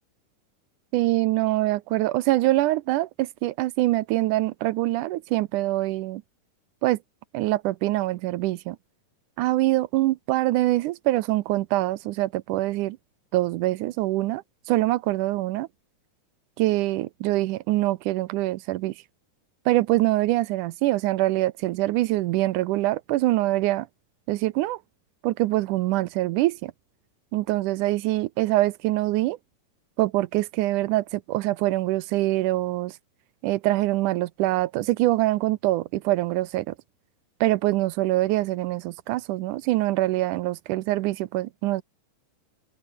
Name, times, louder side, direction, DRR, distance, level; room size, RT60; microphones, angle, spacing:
voice 1, 0.9-6.2 6.8-7.0 7.3-8.8 9.4-13.0 13.3-15.7 16.6-18.9 19.7-23.9 24.3-24.8 25.2-26.7 27.3-29.4 30.0-33.0 33.4-36.7 37.4-41.8, right 17 dB, 75° right, 2.0 m, -24 dB
omnidirectional pair, 3.9 m